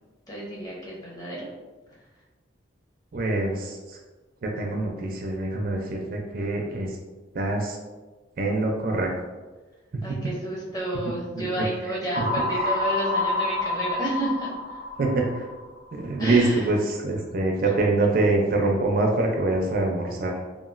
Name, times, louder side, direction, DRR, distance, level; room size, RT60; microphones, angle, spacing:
voice 1, 0.3-1.5 10.0-14.8 16.2-16.7, right 1 dB, 20° left, -5 dB, 0.7 m, -31 dB
voice 2, 3.1-3.8 4.4-6.9 7.3-7.8 8.4-9.1 9.9-10.2 12.2-12.3 15.0-15.4 15.9-20.3, right 2 dB, 50° right, 1 dB, 0.4 m, -24 dB
sound 1, 12.1-16.0, left 2 dB, 70° left, 0.7 m, -28 dB
2.9 x 2.4 x 2.4 m, 1.2 s
head